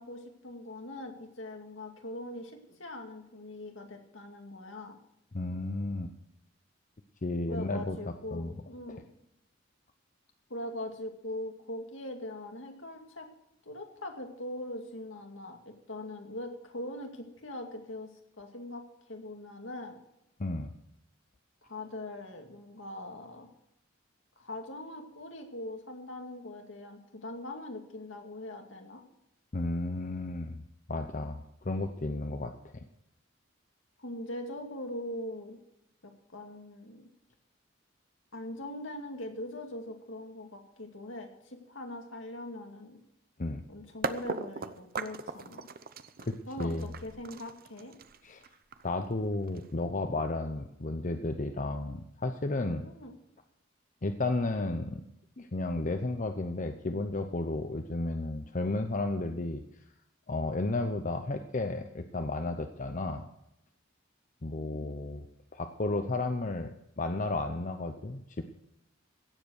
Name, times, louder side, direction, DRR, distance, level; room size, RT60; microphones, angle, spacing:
voice 1, 0.0-5.0 7.5-9.0 10.5-13.3 13.7-18.8 19.1-20.0 21.6-23.5 24.4-29.0 34.0-35.6 36.0-37.1 38.3-43.0 43.7-45.7 46.5-48.0 52.9-53.1, left 1 dB, 70° left, 3 dB, 2.4 m, -41 dB
voice 2, 5.3-6.1 7.2-8.5 20.4-20.7 29.5-30.6 30.9-32.8 43.4-43.6 46.2-46.9 48.2-48.4 48.8-52.9 54.0-55.0 55.4-59.6 60.3-63.2 64.4-65.3 65.5-66.7 67.0-68.4, left 2 dB, 40° left, 7 dB, 0.8 m, -33 dB
sound 1, 44.0-49.9, right 4 dB, 45° right, 0.7 m, -39 dB
16.5 x 7.9 x 6.5 m, 0.84 s
head